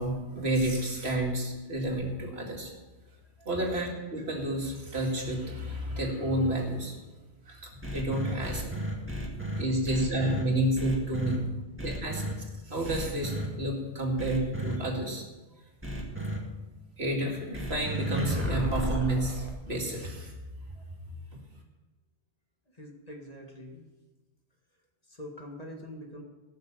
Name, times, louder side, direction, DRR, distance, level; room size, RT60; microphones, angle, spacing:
voice 1, 0.0-2.7 3.5-7.0 7.5-8.6 9.6-11.5 11.8-12.2 12.6-15.2 16.1-16.2 17.0-20.3, right 1 dB, 65° right, -1 dB, 2.6 m, -30 dB
sound 1, 7.8-10.4 10.8-11.4 11.8-12.3 12.8-13.5 14.2-14.8 15.8-16.4 17.5-19.5, right 1 dB, 10° right, 2.1 m, -33 dB
voice 2, 9.2-9.6 18.4-18.6 22.7-23.8 25.1-26.2, left 1 dB, 35° left, 0 dB, 2.0 m, -45 dB
17.0 x 6.7 x 6.9 m, 1.2 s
omnidirectional pair, 1.1 m